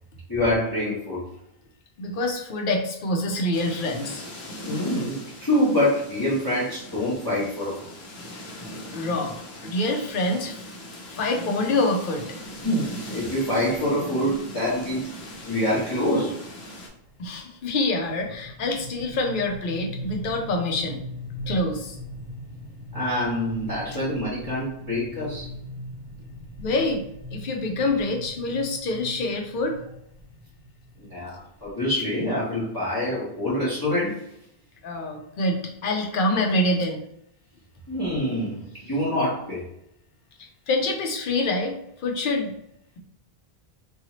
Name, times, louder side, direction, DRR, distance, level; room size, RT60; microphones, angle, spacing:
voice 1, 0.3-1.2 4.6-7.9 12.6-15.1 15.5-16.4 22.9-25.5 31.0-34.3 37.9-39.6, left 1 dB, 25° left, -9 dB, 0.8 m, -26 dB
voice 2, 2.0-4.2 8.9-9.4 9.6-10.6 11.1-12.4 17.2-21.0 21.5-21.9 26.6-27.0 27.3-29.8 34.8-37.0 40.7-41.7 42.0-42.5, left 2 dB, 60° left, 3 dB, 0.7 m, -26 dB
sound 1, 3.5-16.9, equal, 80° left, 1.0 m, -40 dB
sound 2, 15.3-31.7, left 1 dB, 50° right, 0.7 m, -40 dB
2.7 x 2.4 x 2.9 m, 0.76 s
omnidirectional pair, 1.0 m